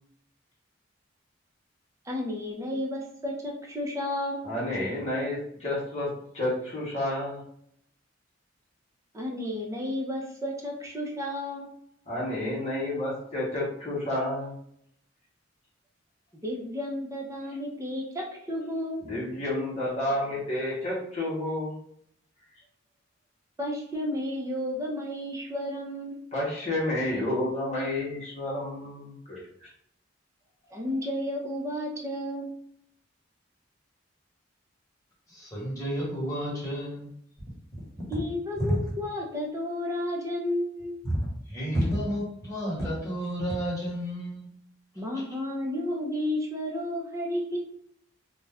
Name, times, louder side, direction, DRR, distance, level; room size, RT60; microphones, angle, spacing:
voice 1, 2.1-4.5 9.1-11.7 16.4-19.0 23.6-26.2 30.7-32.5 38.1-41.0 45.0-47.6, left 1 dB, 15° right, -2 dB, 0.6 m, -32 dB
voice 2, 4.4-6.1 6.3-7.4 12.1-14.5 19.1-21.7 26.3-29.4, left 1 dB, 35° left, -6 dB, 0.9 m, -30 dB
voice 3, 35.3-37.1 41.0-44.5 45.1-45.2, equal, 20° left, -6 dB, 1.2 m, -31 dB
2.4 x 2.2 x 3.4 m, 0.68 s
head